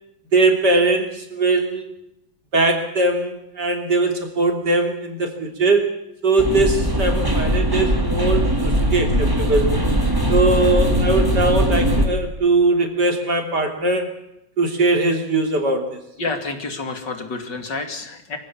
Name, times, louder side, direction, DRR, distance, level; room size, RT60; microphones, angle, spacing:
voice 1, 0.3-1.9 2.5-5.9 6.2-9.7 10.3-14.1 14.6-16.0, right 2 dB, 55° right, 4 dB, 3.6 m, -20 dB
sound 1, 6.4-12.1, equal, 10° right, 2.6 m, -20 dB
voice 2, 16.2-18.4, left 3 dB, 60° left, 6 dB, 3.2 m, -29 dB
24.5 x 16.0 x 8.7 m, 0.82 s
omnidirectional pair, 2.2 m